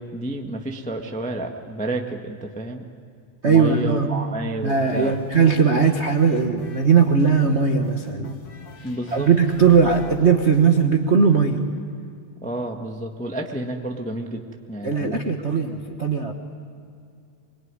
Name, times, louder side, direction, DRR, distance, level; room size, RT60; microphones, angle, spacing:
voice 1, 0.0-2.8 3.5-5.2 8.8-9.3 12.4-14.4 14.7-15.2 15.5-15.6, right 1 dB, 10° left, 2 dB, 0.5 m, -30 dB
voice 2, 3.4-4.1 4.6-8.3 9.1-11.6 14.8-16.3, right 6 dB, 60° right, 3 dB, 0.7 m, -19 dB
sound 1, 4.7-10.9, left 4 dB, 50° left, 2.5 m, -45 dB
sound 2, 8.7-10.2, left 3 dB, 65° left, 6.4 m, -45 dB
26.0 x 22.0 x 9.8 m, 2.4 s
omnidirectional pair, 3.6 m